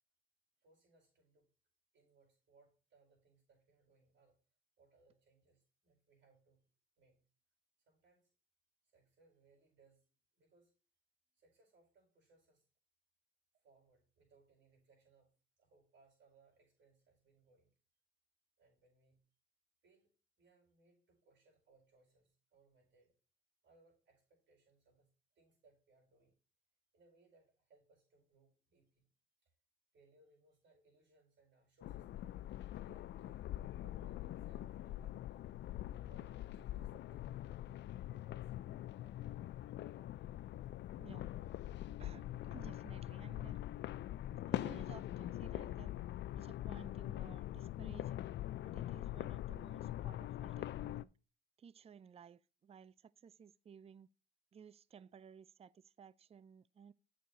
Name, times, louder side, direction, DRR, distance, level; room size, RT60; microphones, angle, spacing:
voice 1, 0.6-1.5 1.9-4.4 4.8-6.6 7.0-7.3 7.9-8.3 8.8-10.1 10.3-10.7 11.3-12.7 13.5-17.7 18.6-19.2 19.8-20.1 20.4-23.1 23.6-25.1 25.3-26.4 26.9-29.1 29.4-29.5 29.9-32.3 32.7-35.5 35.9-39.5, right 3 dB, 70° right, 4.7 m, -71 dB
sound 1, 31.8-51.0, left 13 dB, 65° left, 0.4 m, -43 dB
voice 2, 41.0-41.3 42.0-43.6 44.5-45.9 46.4-48.2 48.6-51.1 51.6-54.1 54.5-56.9, right 7 dB, 30° right, 0.4 m, -57 dB
8.7 x 6.5 x 4.0 m
cardioid pair, 90°, 20 cm